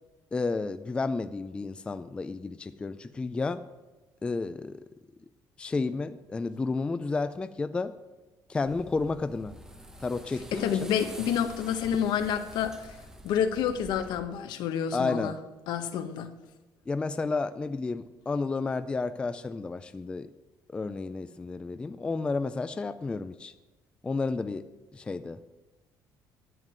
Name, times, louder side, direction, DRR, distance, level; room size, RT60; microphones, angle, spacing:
voice 1, 0.3-3.6 4.2-4.8 5.6-7.9 8.5-9.5 10.0-10.9 14.9-15.3 16.9-20.3 20.7-23.5 24.0-24.6 24.9-25.4, left 3 dB, 15° left, 11 dB, 0.4 m, -31 dB
sound 1, 8.7-14.2, equal, 5° right, 1.0 m, -47 dB
voice 2, 10.5-13.0 13.2-15.3 15.7-16.3, left 8 dB, 75° left, 9 dB, 1.1 m, -29 dB
11.0 x 9.2 x 7.8 m, 1.2 s
cardioid pair, 170°, 8 cm